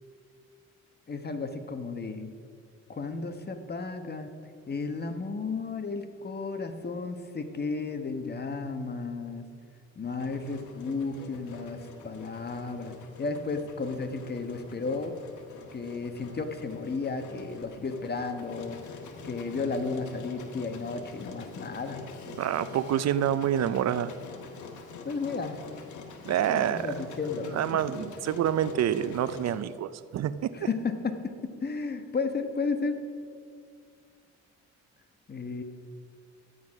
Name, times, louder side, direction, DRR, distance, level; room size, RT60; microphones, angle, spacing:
voice 1, 1.1-2.3 2.9-4.3 4.7-9.5 9.9-15.2 15.7-18.8 19.2-22.1 25.0-25.6 26.5-27.6 30.5-33.0 35.3-35.6, left 4 dB, 35° left, 7 dB, 1.3 m, -33 dB
Engine, 10.2-29.6, left 4 dB, 75° left, 1.7 m, -45 dB
voice 2, 22.4-24.1 26.2-26.9 27.5-30.5, right 10 dB, 60° right, 15 dB, 0.5 m, -27 dB
12.5 x 9.5 x 6.0 m, 2.2 s
cardioid pair, 90°, 30 cm